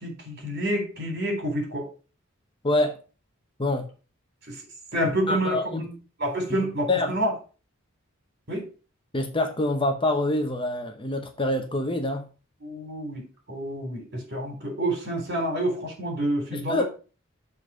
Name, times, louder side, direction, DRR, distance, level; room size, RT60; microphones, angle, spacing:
voice 1, 0.0-1.9 4.5-4.6 4.9-5.9 6.2-7.3 8.5-8.6 12.6-16.8, right 1 dB, 50° right, 2 dB, 3.6 m, -28 dB
voice 2, 2.6-2.9 3.6-3.8 5.3-5.8 6.9-7.1 9.1-12.3 16.5-16.8, left 1 dB, 25° left, 5 dB, 0.9 m, -25 dB
7.2 x 4.1 x 6.1 m, 0.36 s
head